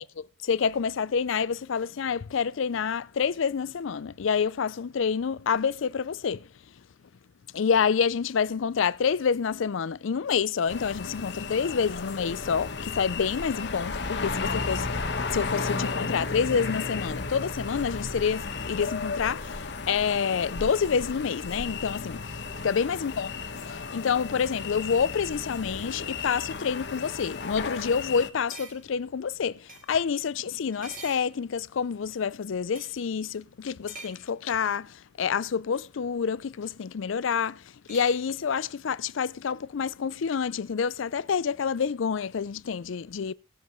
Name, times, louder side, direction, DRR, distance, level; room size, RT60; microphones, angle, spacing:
voice 1, 0.0-6.5 7.5-22.2 22.6-23.3 23.9-37.6 37.9-43.3, left 6 dB, 75° left, 0.4 m, -28 dB
sound 1, 10.7-28.3, left 4 dB, 55° left, 1.1 m, -34 dB
sound 2, 22.3-24.3 25.3-25.6 26.0-26.4 27.0-27.1 27.4-27.5 27.9-28.1 28.5-30.1 30.7-31.9 32.7-33.0 33.9-34.3 36.0-36.1 37.9-38.2, right 3 dB, 40° right, 2.4 m, -49 dB
19.0 x 7.5 x 3.1 m
head